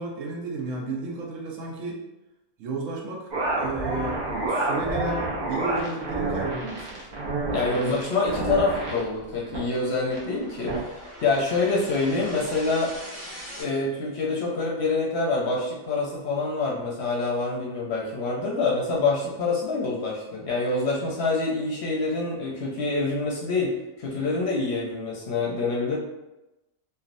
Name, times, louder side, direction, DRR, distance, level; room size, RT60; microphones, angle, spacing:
voice 1, 0.0-2.0 2.6-4.2 4.5-7.0 7.7-8.0, right 3 dB, 70° right, -1 dB, 1.0 m, -33 dB
sound 1, 3.3-9.0 9.5-9.7 10.1-10.2 10.7-10.8, right 2 dB, 40° right, 0.8 m, -28 dB
sound 2, 7.1-13.6, equal, 10° right, 1.3 m, -44 dB
voice 2, 7.5-12.9 13.6-26.0, left 3 dB, 60° left, -3 dB, 0.8 m, -26 dB
3.3 x 2.4 x 2.5 m, 0.98 s
omnidirectional pair, 1.4 m